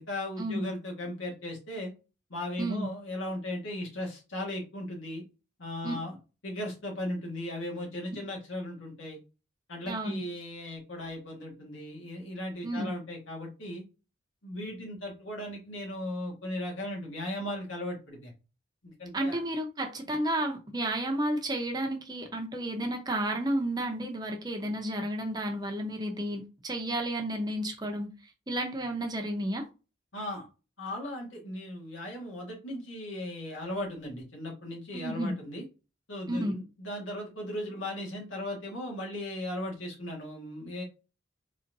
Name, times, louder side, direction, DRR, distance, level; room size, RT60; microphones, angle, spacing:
voice 1, 0.0-1.9 2.3-5.2 5.6-6.2 6.4-9.2 9.7-13.8 14.4-18.3 18.8-19.4 30.1-30.5 30.8-35.6 36.1-40.8, left 1 dB, 90° left, -1 dB, 1.6 m, -37 dB
voice 2, 9.9-10.2 12.6-12.9 19.1-28.1 28.5-29.6 34.9-35.3 36.3-36.5, right 1 dB, 20° right, 2 dB, 0.8 m, -32 dB
4.0 x 3.1 x 2.6 m, 0.30 s
head